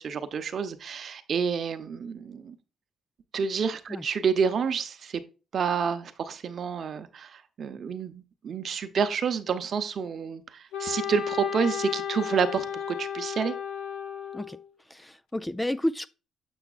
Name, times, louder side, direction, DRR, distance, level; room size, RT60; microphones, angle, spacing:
voice 1, 0.0-2.6 3.3-5.2 5.5-13.5, right 6 dB, 55° right, 0.8 m, -29 dB
Wind instrument woodwind instrument, 10.7-14.7, left 9 dB, 85° left, 1.3 m, -34 dB
voice 2, 14.9-16.1, left 1 dB, 10° left, 0.3 m, -30 dB
7.1 x 6.6 x 2.4 m
cardioid pair, 90°, 0 cm